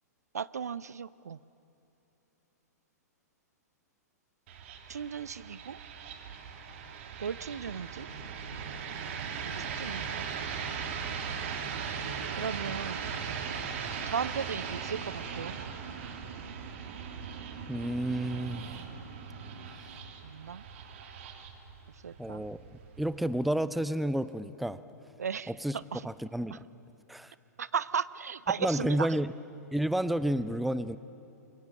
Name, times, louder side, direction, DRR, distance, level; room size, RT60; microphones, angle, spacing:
voice 1, 0.3-1.4 4.9-5.8 7.2-8.1 9.4-10.3 12.4-13.0 14.1-15.6 20.2-20.6 22.0-22.4 25.2-26.0 27.6-29.1, right 7 dB, 65° right, 19 dB, 0.6 m, -36 dB
sound 1, 4.5-23.4, right 6 dB, 45° right, 2.3 m, -39 dB
voice 2, 17.7-18.7 22.2-22.6 23.0-24.8 25.5-26.6 27.1-27.3 28.6-29.3 29.7-31.0, right 1 dB, ahead, 15 dB, 0.5 m, -30 dB
29.5 x 23.5 x 7.5 m, 2.9 s
figure-of-eight pair, 110°, 9 cm